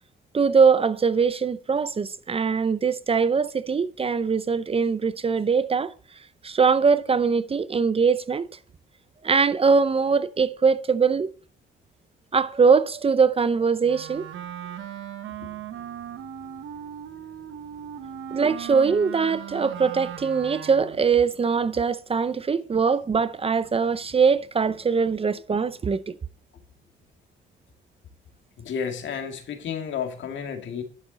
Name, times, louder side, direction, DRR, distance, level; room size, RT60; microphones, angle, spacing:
voice 1, 0.3-5.9 6.4-8.5 9.2-11.3 12.3-14.3 18.3-26.2, right 5 dB, 30° right, 0.6 m, -22 dB
Wind instrument woodwind instrument, 13.8-21.1, right 10 dB, 80° right, 1.1 m, -38 dB
voice 2, 28.6-30.8, left 7 dB, 70° left, 2.0 m, -32 dB
11.0 x 7.2 x 3.9 m
cardioid pair, 90°, 20 cm